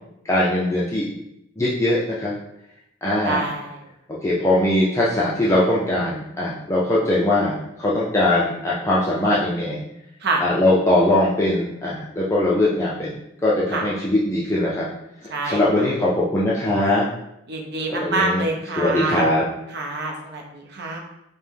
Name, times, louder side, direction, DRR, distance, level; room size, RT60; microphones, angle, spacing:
voice 1, 0.2-1.1 1.6-2.3 3.0-3.5 4.2-9.8 10.4-13.2 13.4-14.9 15.2-17.1 17.9-18.5 18.8-19.4, left 1 dB, 15° left, -7 dB, 0.4 m, -21 dB
voice 2, 3.2-3.8 10.2-10.4 13.7-13.8 15.3-15.9 17.5-19.3 19.7-21.0, right 3 dB, 55° right, 1 dB, 0.7 m, -26 dB
5.1 x 2.2 x 3.3 m, 0.83 s
head